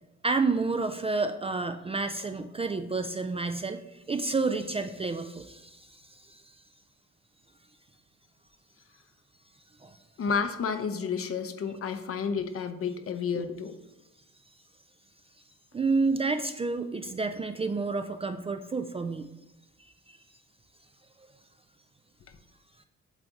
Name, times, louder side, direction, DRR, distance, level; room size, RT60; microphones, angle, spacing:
voice 1, 0.2-6.5 9.8-10.0 15.7-19.3 19.8-20.2, right 3 dB, 20° right, 8 dB, 0.3 m, -30 dB
voice 2, 10.2-13.8, left 6 dB, 50° left, 9 dB, 0.7 m, -31 dB
8.2 x 3.4 x 4.0 m, 0.93 s
cardioid pair, 90°, 30 cm